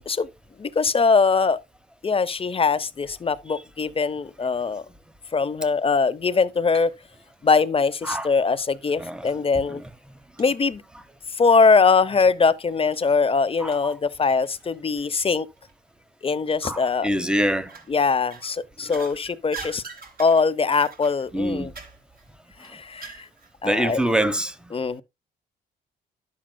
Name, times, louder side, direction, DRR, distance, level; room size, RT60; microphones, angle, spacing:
voice 1, 0.6-1.6 2.0-4.8 5.3-6.9 7.4-9.8 10.4-10.8 11.4-15.5 16.2-17.1 17.9-19.8 20.2-21.7 22.6-23.3 23.6-24.0 24.7-25.0, left 4 dB, 30° left, 0.7 m, -22 dB
sound 1, 6.2-7.0 7.3-8.4 9.1-9.2 9.7-9.8 10.4-10.5 10.9-11.0 12.2-12.4 12.9-15.2 15.6-15.7 16.5-17.0 17.5-17.9 18.3-23.5 23.8-23.9, right 5 dB, 45° right, 2.6 m, -44 dB
voice 2, 13.6-13.9 16.6-17.7 18.9-19.0 21.3-21.7 23.6-24.7, right 1 dB, 5° right, 1.0 m, -25 dB
11.5 x 7.5 x 2.2 m
cardioid pair, 90°, 20 cm